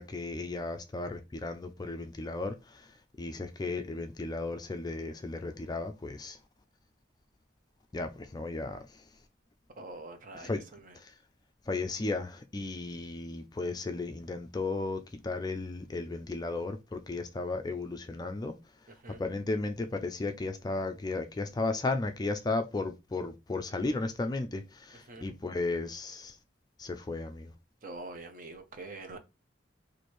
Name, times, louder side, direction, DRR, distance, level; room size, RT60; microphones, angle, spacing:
voice 1, 0.0-6.4 7.9-9.2 10.3-10.6 10.9-11.2 11.7-26.4 26.8-27.6, left 3 dB, 20° left, 0.4 m, -35 dB
voice 2, 9.8-10.9 19.0-19.2 25.1-25.3 27.8-29.2, right 2 dB, 45° right, 0.7 m, -45 dB
3.1 x 2.6 x 4.2 m
head